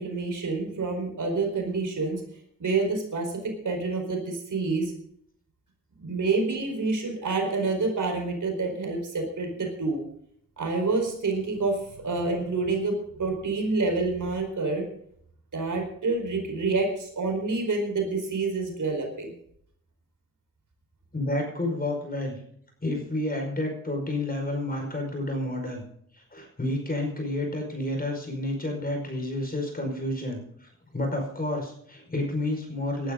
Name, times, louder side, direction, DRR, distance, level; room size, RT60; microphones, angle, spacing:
voice 1, 0.0-2.2 2.6-4.9 6.0-10.0 10.6-14.9 15.5-19.3, right 3 dB, 60° right, 3 dB, 4.6 m, -28 dB
voice 2, 21.1-22.4 22.8-25.8 26.1-33.1, left 1 dB, 25° left, 3 dB, 5.2 m, -30 dB
19.0 x 12.0 x 3.9 m, 0.67 s
wide cardioid pair, 110°, 35 cm